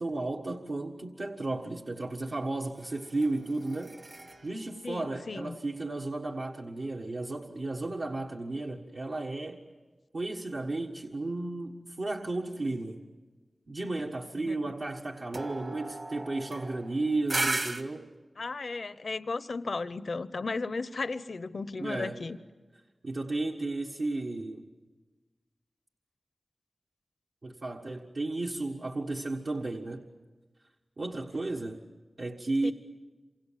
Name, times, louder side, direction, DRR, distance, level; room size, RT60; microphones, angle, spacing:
voice 1, 0.0-4.0 4.4-9.6 10.1-13.0 13.7-18.1 21.8-22.2 23.0-24.6 27.4-30.1 31.0-31.8 32.2-32.7, right 2 dB, 75° right, 1.6 m, -33 dB
sound 1, 2.8-6.2 15.3-17.8, right 2 dB, 55° right, 1.9 m, -37 dB
voice 2, 4.8-5.6 14.5-14.6 18.4-22.4 32.6-32.7, left 3 dB, 75° left, 0.8 m, -35 dB
27.5 x 26.5 x 7.5 m
cardioid pair, 45°, 0 cm